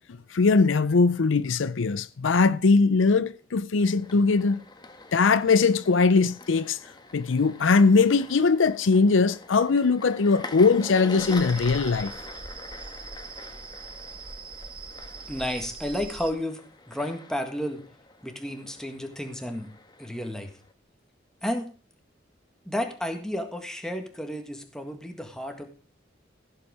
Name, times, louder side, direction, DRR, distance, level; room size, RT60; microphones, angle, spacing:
voice 1, 0.3-4.6 5.1-6.8 7.1-12.1, left 4 dB, 75° left, 0.5 m, -21 dB
sound 1, 3.8-20.7, left 3 dB, 20° left, 1.2 m, -44 dB
sound 2, 11.2-16.3, right 4 dB, 25° right, 1.1 m, -41 dB
voice 2, 15.3-16.6 16.9-17.8 18.2-19.7 20.0-20.5 21.4-21.7 22.6-25.7, equal, 5° left, 1.8 m, -32 dB
15.5 x 8.0 x 4.8 m
head